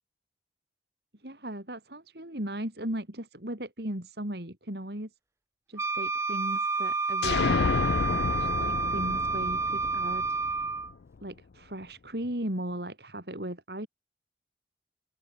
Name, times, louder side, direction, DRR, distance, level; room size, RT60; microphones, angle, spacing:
voice 1, 1.2-5.1 5.7-10.3 11.2-13.9, right 1 dB, 70° right, 4.6 m, -37 dB
Wind instrument woodwind instrument, 5.8-10.9, right 4 dB, 15° right, 1.2 m, -29 dB
sound 1, 7.2-10.9, left 5 dB, 70° left, 0.4 m, -30 dB
open air
head